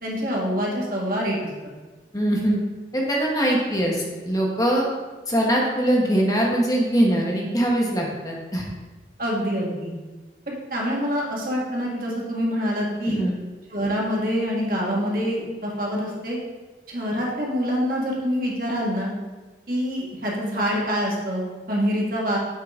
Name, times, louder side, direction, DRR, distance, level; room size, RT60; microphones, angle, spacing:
voice 1, 0.0-1.5 9.2-9.9 10.5-13.2 13.7-16.4 16.9-19.1 19.7-22.4, equal, 50° right, -3 dB, 1.7 m, -26 dB
voice 2, 2.1-2.6 2.9-4.8 5.3-8.6 13.0-13.4, right 1 dB, 20° left, -2 dB, 1.1 m, -22 dB
8.2 x 3.8 x 5.0 m, 1.2 s
head